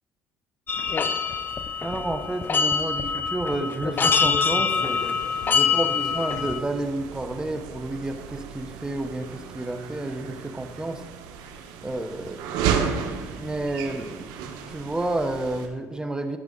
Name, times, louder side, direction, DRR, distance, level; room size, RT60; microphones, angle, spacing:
sound 1, 0.7-6.6, left 6 dB, 30° left, 0.5 m, -25 dB
voice 1, 1.8-5.2 5.5-11.0 11.8-12.5 13.4-14.3 14.7-16.4, right 2 dB, 10° right, 7 dB, 0.7 m, -30 dB
sound 2, 4.7-15.7, right 7 dB, 80° right, 1.0 m, -34 dB
13.5 x 5.0 x 3.7 m, 1.4 s
cardioid pair, 115°, 7 cm